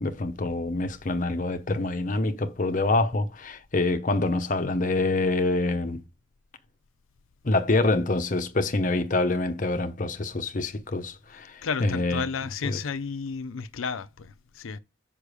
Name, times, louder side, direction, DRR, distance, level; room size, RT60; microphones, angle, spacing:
voice 1, 0.0-6.0 7.4-12.2 12.6-12.8, left 2 dB, 40° left, 0.7 m, -26 dB
voice 2, 11.6-14.8, left 5 dB, 80° left, 0.5 m, -32 dB
6.7 x 5.6 x 4.9 m
head